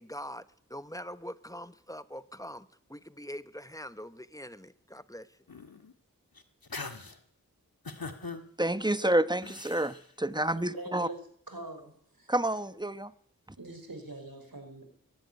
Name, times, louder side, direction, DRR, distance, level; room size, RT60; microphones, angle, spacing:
voice 1, 0.0-5.4, equal, 10° left, 1.0 m, -43 dB
sound 1, 5.5-5.9 6.4-7.2 7.8-8.4 9.4-10.0, left 4 dB, 80° left, 1.9 m, -41 dB
voice 2, 8.6-11.1 12.3-13.1, right 1 dB, 10° right, 1.1 m, -29 dB
voice 3, 10.4-11.2 11.5-12.3 13.6-14.8, right 2 dB, 80° right, 4.9 m, -44 dB
22.5 x 12.0 x 9.9 m
wide cardioid pair, 40°, 35 cm